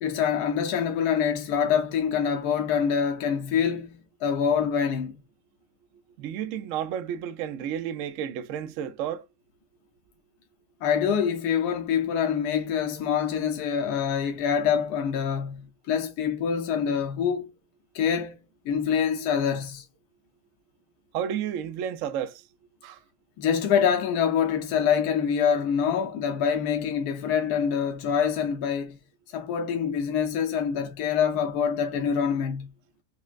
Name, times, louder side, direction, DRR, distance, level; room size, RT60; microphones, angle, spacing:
voice 1, 0.0-5.2 10.8-17.5 17.9-18.4 18.7-19.8 23.4-29.0 29.3-32.7, left 7 dB, 70° left, 1.1 m, -25 dB
voice 2, 6.2-9.3 21.1-22.5 22.8-23.0, right 9 dB, 75° right, 0.7 m, -31 dB
5.7 x 2.0 x 2.3 m
omnidirectional pair, 1.8 m